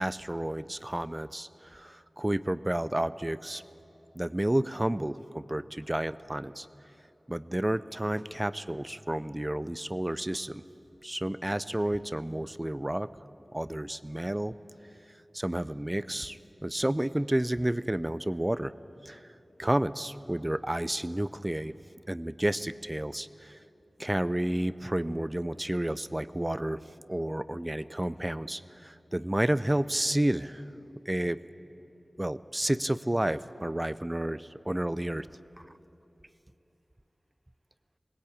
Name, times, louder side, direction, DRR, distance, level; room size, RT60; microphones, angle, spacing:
voice 1, 0.0-3.6 4.2-6.7 7.3-10.6 11.0-13.1 13.5-14.5 15.3-18.7 19.0-19.2 19.6-21.7 22.1-23.6 24.0-26.8 27.1-30.6 31.1-31.4 32.2-35.3 35.6-35.7, right 1 dB, 20° right, 15 dB, 0.5 m, -31 dB
18.5 x 16.5 x 8.6 m, 3.0 s
wide cardioid pair, 45°, 0 cm